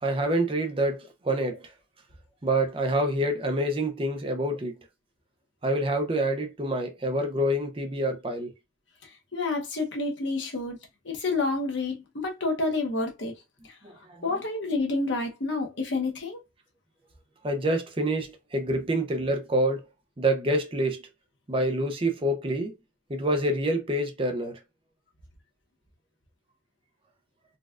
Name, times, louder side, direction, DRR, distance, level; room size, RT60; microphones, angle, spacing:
voice 1, 0.0-1.7 2.4-4.8 5.6-8.5 13.8-14.2 17.4-19.9 20.2-21.0 21.5-22.7 23.1-24.6, right 1 dB, 30° right, 0.5 m, -27 dB
voice 2, 9.3-10.8 11.0-13.3 13.6-13.8 14.2-16.4, left 3 dB, 80° left, 0.9 m, -29 dB
4.0 x 2.3 x 2.4 m
head